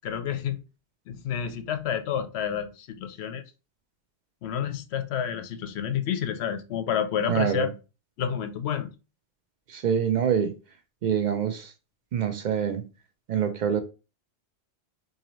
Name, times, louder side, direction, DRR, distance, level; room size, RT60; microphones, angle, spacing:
voice 1, 0.0-0.6 1.1-3.4 4.4-7.7 8.2-8.9, left 8 dB, 65° left, 0.8 m, -29 dB
voice 2, 7.3-7.7 9.7-10.5 11.0-11.7 12.1-12.8 13.3-13.8, right 8 dB, 65° right, 0.4 m, -25 dB
3.8 x 2.7 x 3.0 m
omnidirectional pair, 1.3 m